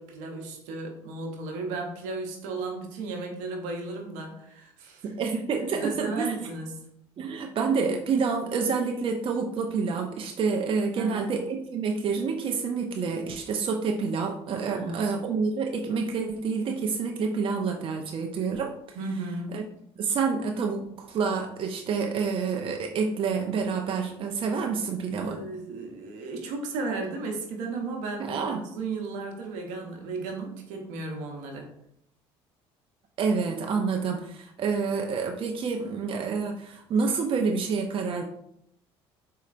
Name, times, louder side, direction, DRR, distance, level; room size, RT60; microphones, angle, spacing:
voice 1, 0.0-5.1 5.7-6.9 10.9-11.3 14.7-15.1 18.9-19.6 25.1-31.7, right 3 dB, 75° right, 2 dB, 0.8 m, -35 dB
voice 2, 5.0-6.3 7.2-19.0 19.5-19.6 20.0-25.4 28.2-28.6 33.2-38.2, right 5 dB, 45° right, 3 dB, 0.5 m, -28 dB
4.1 x 2.8 x 2.5 m, 0.73 s
hypercardioid pair, 70°, 13 cm